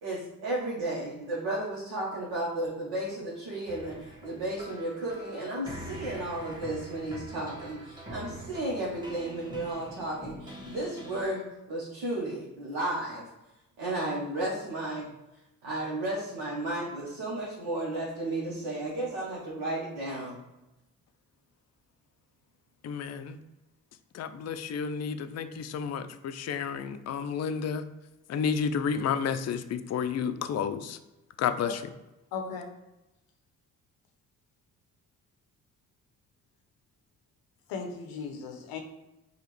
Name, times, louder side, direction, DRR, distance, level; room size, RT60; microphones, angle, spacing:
voice 1, 0.0-11.4 11.7-13.3 13.8-15.1 15.6-20.4, right 1 dB, 80° right, -6 dB, 1.0 m, -33 dB
sound 1, 3.7-11.3, equal, 10° right, 1.3 m, -44 dB
voice 2, 22.8-23.4 24.1-27.8 28.3-31.0 31.4-31.8, left 7 dB, 45° left, 9 dB, 0.4 m, -31 dB
voice 3, 32.3-32.7 37.7-38.8, left 5 dB, 90° left, 3 dB, 0.7 m, -36 dB
4.8 x 2.4 x 3.1 m, 0.98 s
supercardioid pair, 50°, 36 cm